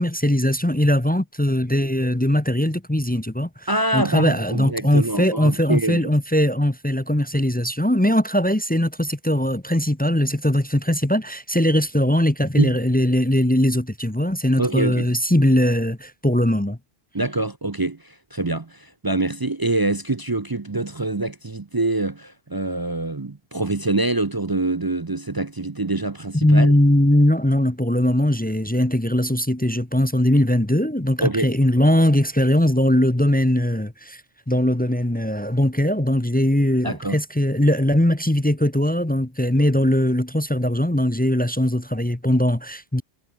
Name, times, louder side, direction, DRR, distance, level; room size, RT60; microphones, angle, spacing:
voice 1, 0.0-16.8 26.3-34.2 34.5-43.0, left 1 dB, 10° left, 0.9 m, -20 dB
voice 2, 3.7-6.0 12.6-12.8 14.6-15.1 17.1-26.7 31.2-31.5 36.8-37.2, right 2 dB, 25° right, 0.6 m, -25 dB
omnidirectional pair, 1.1 m